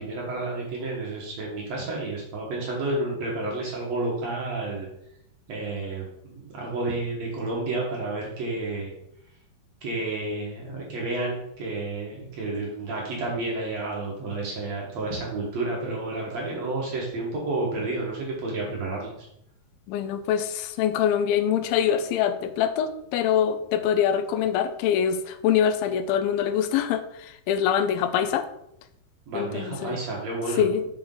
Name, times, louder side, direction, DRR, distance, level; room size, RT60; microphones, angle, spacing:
voice 1, 0.0-4.9 5.5-8.9 9.8-19.1 29.3-30.9, right 2 dB, 55° right, -3 dB, 2.2 m, -30 dB
voice 2, 19.9-28.5 29.3-30.0 30.6-30.8, left 9 dB, 85° left, 9 dB, 2.4 m, -24 dB
6.5 x 5.8 x 3.8 m, 0.77 s
omnidirectional pair, 4.2 m